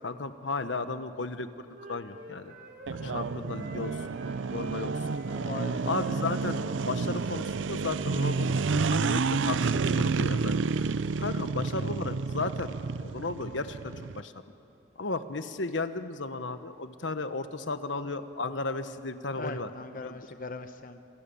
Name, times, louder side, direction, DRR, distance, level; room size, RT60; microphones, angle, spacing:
voice 1, 0.0-2.6 2.9-4.2 4.5-4.9 5.3-5.5 5.8-10.9 11.2-14.3 15.0-19.7 20.0-20.2, left 3 dB, 80° left, 10 dB, 1.2 m, -35 dB
Wind instrument woodwind instrument, 1.7-7.2, right 2 dB, 55° right, 3.9 m, -46 dB
sound 1, 2.9-14.2, right 4 dB, 85° right, 0.5 m, -30 dB
voice 2, 5.1-5.8 19.4-21.0, left 3 dB, 45° left, 8 dB, 0.9 m, -40 dB
28.0 x 28.0 x 7.1 m, 2.6 s
head